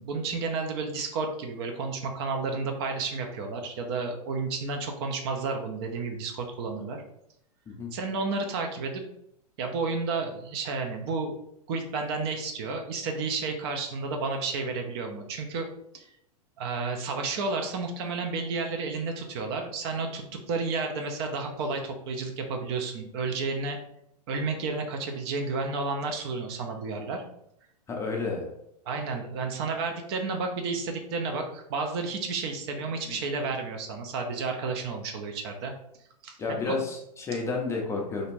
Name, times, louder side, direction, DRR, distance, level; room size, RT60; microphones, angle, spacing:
voice 1, 0.0-7.0 7.9-9.0 9.6-11.3 11.7-15.7 15.9-16.0 16.6-23.8 24.3-27.2 28.9-35.7 36.2-36.8, right 4 dB, 40° right, 3 dB, 0.5 m, -31 dB
voice 2, 27.9-28.5 33.1-33.2 36.4-38.3, left 4 dB, 15° left, 0 dB, 0.5 m, -31 dB
2.5 x 2.4 x 3.1 m, 0.75 s
figure-of-eight pair, 105°, 20 cm